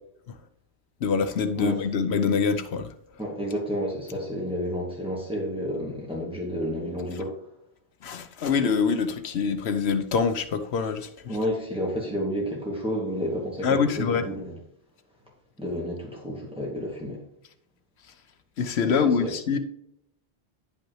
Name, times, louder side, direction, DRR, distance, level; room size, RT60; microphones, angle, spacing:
voice 1, 1.0-2.9 8.0-11.1 13.6-14.2 18.6-19.6, left 5 dB, 85° left, 1.0 m, -25 dB
voice 2, 3.2-7.4 11.3-14.6 15.6-17.2 18.8-19.3, equal, 5° right, 2.4 m, -30 dB
10.5 x 5.5 x 3.2 m
omnidirectional pair, 1.1 m